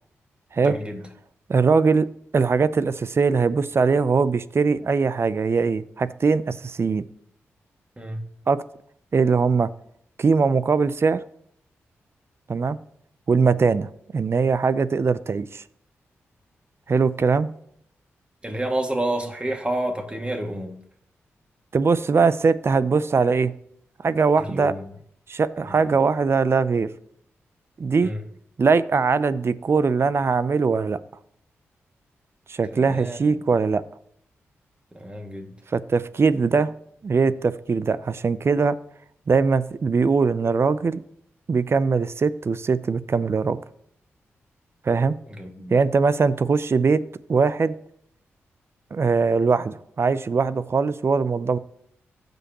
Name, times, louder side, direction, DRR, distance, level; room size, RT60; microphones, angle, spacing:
voice 1, 0.6-1.0 8.0-8.3 18.4-20.8 24.5-24.8 25.7-25.8 28.0-28.2 32.7-33.4 34.9-35.5 45.3-45.8, right 1 dB, 20° right, 3 dB, 2.1 m, -29 dB
voice 2, 1.5-2.1 2.3-7.0 8.5-8.6 9.1-9.7 10.2-11.2 12.5-12.8 13.3-15.6 16.9-17.5 21.7-23.5 24.0-24.7 25.3-26.9 27.8-28.1 28.6-31.0 32.5-33.8 35.7-36.7 37.0-38.8 39.3-41.0 41.5-43.6 44.9-45.2 45.7-47.0 47.3-47.7 48.9-51.6, right 4 dB, 50° right, 16 dB, 0.5 m, -21 dB
15.0 x 5.3 x 3.0 m, 0.69 s
supercardioid pair, 40°, 6 cm